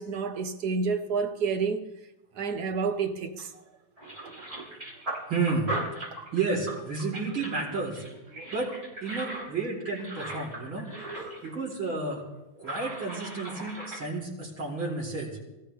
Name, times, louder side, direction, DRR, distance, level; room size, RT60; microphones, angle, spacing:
voice 1, 0.0-1.8 2.3-3.5, right 5 dB, 60° right, 1.6 m, -29 dB
sound 1, 3.4-3.6 4.0-11.5 11.8-11.9 12.5-14.0, right 1 dB, 30° right, 5.3 m, -38 dB
voice 2, 5.3-5.7 6.3-8.0 8.5-8.7 9.0-10.9 11.4-12.2 12.6-15.4, right 4 dB, 90° right, 4.9 m, -31 dB
23.5 x 15.0 x 3.4 m
omnidirectional pair, 2.1 m